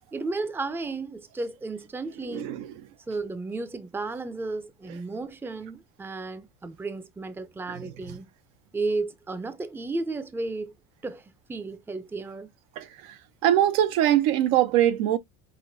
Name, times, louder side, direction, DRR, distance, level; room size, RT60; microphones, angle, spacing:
voice 1, 0.1-2.6 3.1-8.3 8.7-10.8 11.0-12.5, right 3 dB, 5° right, 0.5 m, -33 dB
voice 2, 2.3-2.7 7.8-7.9 12.8-13.1 13.4-15.2, right 12 dB, 80° right, 0.7 m, -22 dB
5.9 x 2.5 x 2.6 m
supercardioid pair, 105°, 33 cm